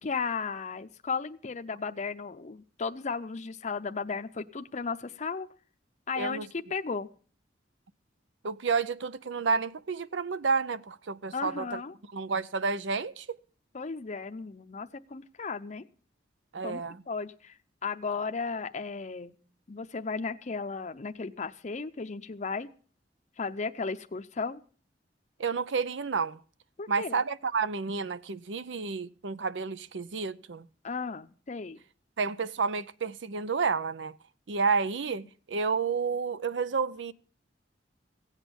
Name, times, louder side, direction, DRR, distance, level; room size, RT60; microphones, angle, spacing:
voice 1, 0.0-5.5 6.1-7.1 11.3-11.9 13.7-15.8 16.6-16.8 17.1-17.5 17.8-19.3 19.7-22.7 23.4-24.6 26.8-27.2 30.8-31.8, left 4 dB, 40° left, 0.6 m, -35 dB
voice 2, 8.4-11.8 12.1-13.4 16.5-17.0 25.4-26.4 26.9-30.7 32.2-34.2 34.5-37.1, right 5 dB, 85° right, 0.6 m, -30 dB
16.0 x 8.2 x 6.8 m
head